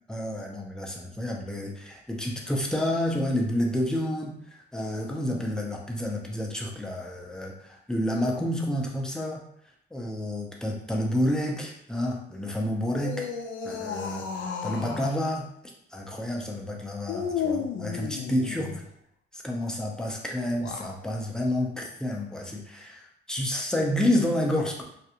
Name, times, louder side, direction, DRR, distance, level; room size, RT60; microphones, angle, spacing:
voice 1, 0.1-4.4 4.7-9.4 9.9-13.3 13.6-15.5 15.9-18.7 19.3-24.8, left 1 dB, 5° left, -1 dB, 0.5 m, -29 dB
sound 1, 12.9-15.2 17.1-18.9 20.5-21.0, left 6 dB, 75° left, 0.5 m, -33 dB
2.5 x 2.3 x 2.8 m, 0.72 s
cardioid pair, 90°, 20 cm